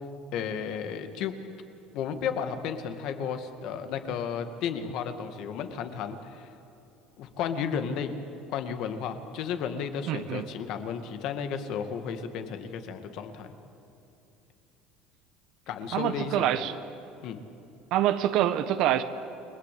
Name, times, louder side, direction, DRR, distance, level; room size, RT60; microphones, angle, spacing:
voice 1, 0.3-1.3 1.9-6.5 7.2-8.2 8.5-13.5 15.7-16.5 17.2-17.4, left 7 dB, 60° left, 8 dB, 2.2 m, -33 dB
voice 2, 10.1-10.4 15.9-16.8 17.9-19.0, right 12 dB, 60° right, 10 dB, 1.2 m, -26 dB
29.5 x 21.0 x 8.6 m, 2.8 s
cardioid pair, 130°, 0 cm